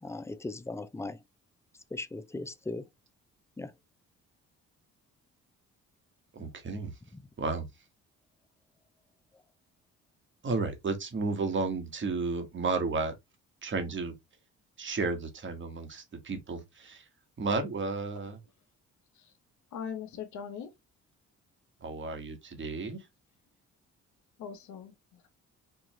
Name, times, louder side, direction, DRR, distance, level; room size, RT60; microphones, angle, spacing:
voice 1, 0.0-1.2 1.9-2.9 3.6-3.7 7.1-7.2, left 2 dB, 10° left, 0.5 m, -38 dB
voice 2, 6.3-6.9 7.4-7.7 10.4-13.1 13.6-14.1 14.8-17.0 17.4-18.4 21.8-23.0, right 4 dB, 40° right, 1.2 m, -32 dB
voice 3, 19.7-20.7 24.4-25.3, left 7 dB, 75° left, 1.0 m, -41 dB
4.6 x 2.4 x 3.1 m
cardioid pair, 90°, 30 cm